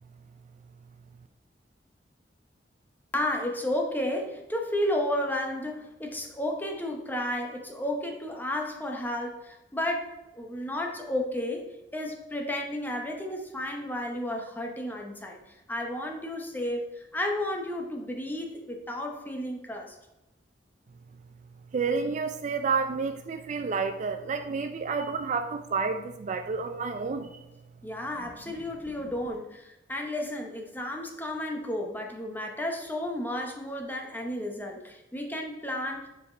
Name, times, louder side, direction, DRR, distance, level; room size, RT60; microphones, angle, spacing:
voice 1, 3.1-10.1 10.4-11.7 11.9-20.0 27.8-36.1, left 1 dB, 10° left, 1 dB, 0.8 m, -32 dB
voice 2, 21.7-27.4, right 5 dB, 45° right, 8 dB, 0.4 m, -30 dB
5.0 x 4.9 x 4.3 m, 0.99 s
head